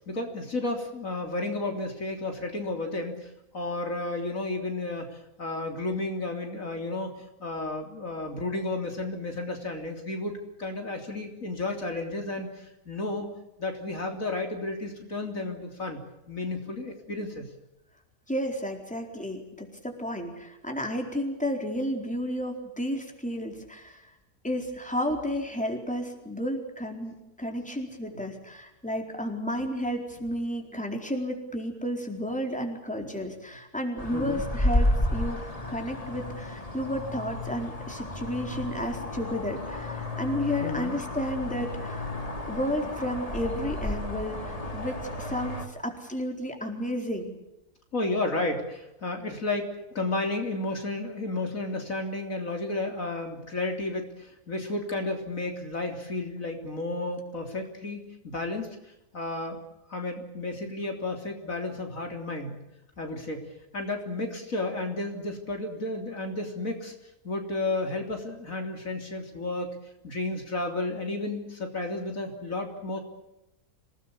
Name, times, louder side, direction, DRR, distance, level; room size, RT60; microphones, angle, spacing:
voice 1, 0.0-10.3 10.6-13.3 13.6-16.0 16.3-17.5 28.1-28.2 33.0-33.3 34.1-34.4 40.6-40.9 47.9-59.6 59.9-62.6 63.0-63.5 63.7-66.9 67.2-69.8 70.0-73.0, left 2 dB, 60° left, 3 dB, 3.8 m, -32 dB
voice 2, 18.3-24.0 24.4-42.1 42.5-47.3, equal, 5° left, 3 dB, 4.4 m, -32 dB
sound 1, 34.0-45.7, left 1 dB, 25° left, 2.6 m, -32 dB
27.0 x 19.0 x 8.5 m, 0.90 s
omnidirectional pair, 1.6 m